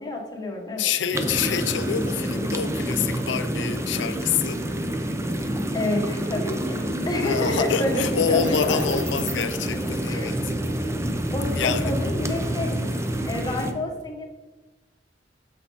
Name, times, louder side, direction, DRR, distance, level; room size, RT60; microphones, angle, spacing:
voice 1, 0.0-0.9 5.7-8.8 10.0-10.3 11.3-12.8 13.2-14.3, left 2 dB, 20° left, 1.3 m, -29 dB
voice 2, 0.8-4.7 7.2-10.5 11.6-12.0 13.4-13.6, left 7 dB, 85° left, 0.5 m, -27 dB
sound 1, 1.1-13.7, right 1 dB, 15° right, 0.6 m, -27 dB
8.2 x 5.7 x 4.1 m
head